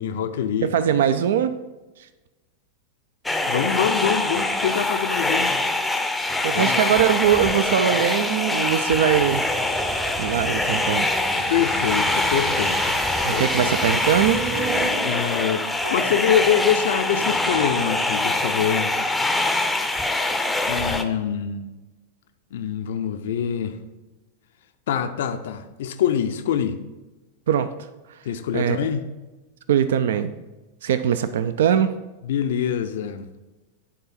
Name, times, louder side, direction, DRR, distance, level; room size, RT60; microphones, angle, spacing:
voice 1, 0.0-0.7 3.4-5.6 6.5-6.8 11.5-13.0 13.3-13.7 15.0-18.9 20.6-21.7 22.5-23.8 24.9-26.8 28.3-29.0 32.2-33.3, left 8 dB, 60° left, 9 dB, 0.4 m, -25 dB
voice 2, 0.6-1.5 6.4-9.4 10.2-11.1 13.2-14.4 27.5-27.7 28.5-28.9 29.7-30.3 30.8-31.9, right 9 dB, 60° right, 12 dB, 0.3 m, -21 dB
sound 1, 3.3-21.0, left 2 dB, 5° left, 0.6 m, -24 dB
sound 2, 8.1-9.9 14.5-18.0, equal, 90° left, 0.7 m, -38 dB
sound 3, 9.1-14.9, right 4 dB, 30° right, 0.9 m, -32 dB
10.0 x 3.9 x 4.2 m, 1.1 s
figure-of-eight pair, 90°, 0 cm